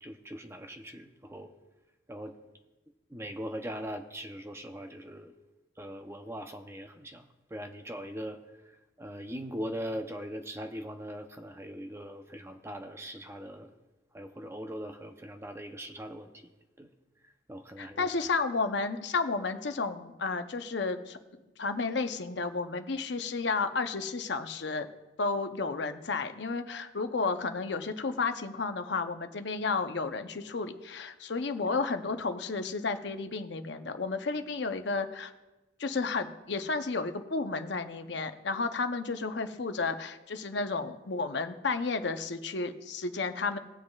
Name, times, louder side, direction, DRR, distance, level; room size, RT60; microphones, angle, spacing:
voice 1, 0.0-1.5 2.1-2.4 3.1-5.3 5.8-8.4 9.0-13.7 14.1-16.3 16.8-16.9 17.5-18.1, equal, 15° right, 6 dB, 0.7 m, -40 dB
voice 2, 17.8-21.2 21.6-24.9 25.2-35.3 35.8-43.6, left 4 dB, 70° left, 8 dB, 0.7 m, -32 dB
19.0 x 7.5 x 2.4 m, 1.1 s
head